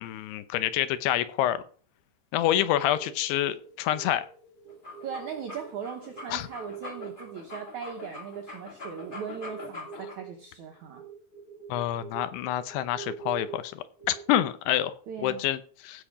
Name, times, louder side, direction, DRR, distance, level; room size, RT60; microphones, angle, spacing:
voice 1, 0.0-1.6 2.3-4.3 6.3-6.5 11.7-14.9 15.2-16.0, left 12 dB, 80° left, 13 dB, 2.7 m, -27 dB
sound 1, 2.7-8.5 8.8-14.7, right 8 dB, 65° left, 0.9 m, -46 dB
sound 2, 4.7-10.2, left 3 dB, 20° left, 1.5 m, -43 dB
voice 2, 5.0-11.0 15.1-15.4, right 7 dB, 80° right, 4 dB, 1.7 m, -39 dB
15.5 x 5.4 x 4.9 m, 0.42 s
omnidirectional pair, 4.9 m